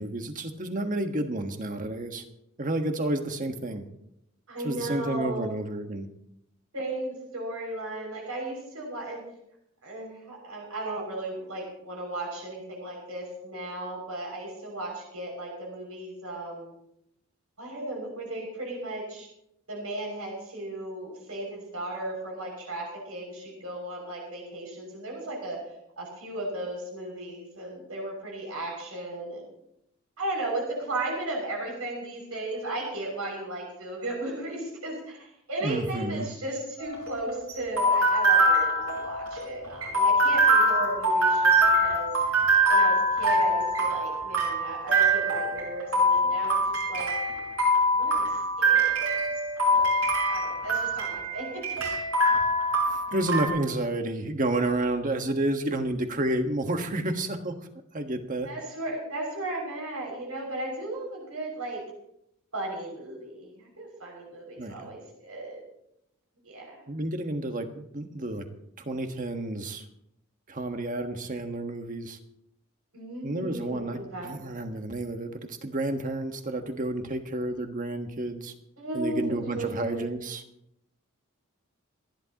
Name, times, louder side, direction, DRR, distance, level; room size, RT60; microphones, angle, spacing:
voice 1, 0.0-2.2 2.6-3.8 4.6-6.1 35.6-36.3 52.9-57.5 57.9-58.5 64.6-64.9 66.9-68.4 68.8-69.8 70.5-72.2 73.2-78.5 78.9-80.4, right 1 dB, 40° right, 5 dB, 1.5 m, -30 dB
voice 2, 4.5-5.6 6.7-9.2 9.8-16.7 17.6-19.3 19.7-25.6 26.0-29.5 30.2-41.5 41.8-42.3 42.7-49.2 49.7-49.9 50.3-51.6 58.4-61.8 62.5-65.6 66.4-66.8 72.9-74.3 78.8-80.0, right 2 dB, 90° right, -1 dB, 6.3 m, -35 dB
sound 1, 36.8-53.5, right 1 dB, 70° right, 6.4 m, -24 dB
28.0 x 11.0 x 3.0 m, 0.77 s
head